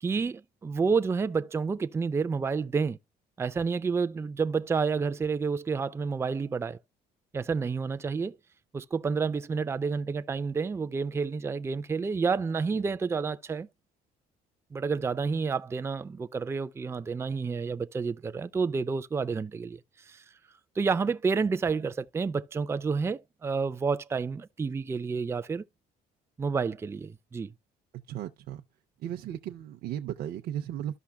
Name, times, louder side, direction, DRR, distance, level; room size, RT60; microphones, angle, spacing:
voice 1, 0.0-3.0 3.4-6.8 7.3-8.4 8.7-13.7 14.7-19.8 20.1-20.2 20.8-25.6 26.4-27.5, right 5 dB, 15° right, 0.4 m, -29 dB
voice 2, 27.9-28.6 29.0-31.0, right 11 dB, 65° right, 0.6 m, -36 dB
13.0 x 5.6 x 2.2 m
cardioid pair, 110°, 17 cm